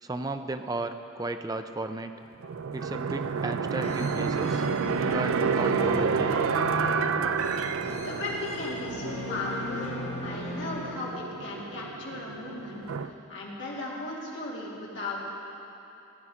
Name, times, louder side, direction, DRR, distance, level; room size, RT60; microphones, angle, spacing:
voice 1, 0.0-2.1 2.7-4.7 5.1-6.3, right 2 dB, 15° right, 8 dB, 0.4 m, -34 dB
sound 1, 2.4-13.1, right 5 dB, 80° right, 0.4 m, -30 dB
sound 2, 3.8-11.5, left 2 dB, 30° left, 1.1 m, -37 dB
voice 2, 7.9-9.9 10.2-12.8 13.3-15.2, left 2 dB, 60° left, -5 dB, 2.5 m, -36 dB
16.0 x 9.8 x 5.0 m, 3.0 s
head